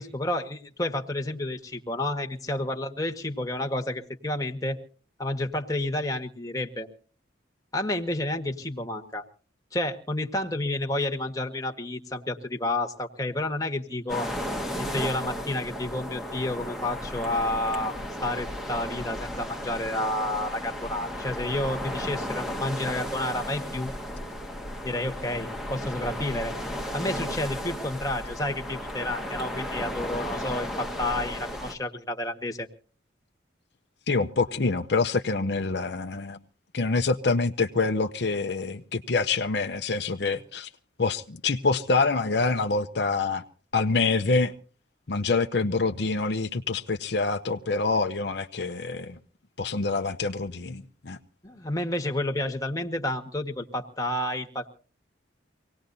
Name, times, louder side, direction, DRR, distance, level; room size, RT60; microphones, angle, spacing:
voice 1, 0.0-4.8 5.2-6.9 7.7-9.2 9.7-14.3 14.8-17.9 18.2-23.9 24.8-26.5 26.9-32.7 51.4-54.7, left 1 dB, 20° left, 3 dB, 1.5 m, -30 dB
sound 1, 14.1-31.8, equal, ahead, 1.3 m, -34 dB
voice 2, 34.1-36.4 36.7-40.7 41.0-43.4 43.7-44.5 45.1-49.2 49.6-51.2, left 3 dB, 60° left, 6 dB, 0.7 m, -26 dB
25.0 x 18.5 x 2.7 m, 0.41 s
head